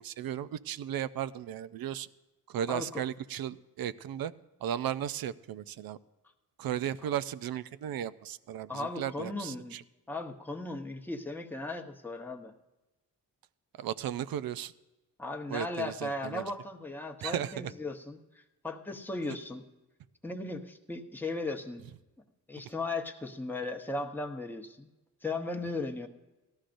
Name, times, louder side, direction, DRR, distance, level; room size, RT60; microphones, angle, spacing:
voice 1, 0.0-2.1 2.5-4.3 4.6-6.0 6.6-9.8 13.8-14.7 15.5-16.4 17.2-17.7, right 10 dB, 65° right, 16 dB, 0.5 m, -35 dB
voice 2, 2.7-3.0 8.7-9.8 10.1-12.5 15.2-19.6 20.2-21.9 22.5-24.9 25.2-26.1, left 2 dB, 5° left, 2 dB, 0.9 m, -37 dB
18.0 x 13.0 x 2.6 m, 1.1 s
cardioid pair, 90°, 39 cm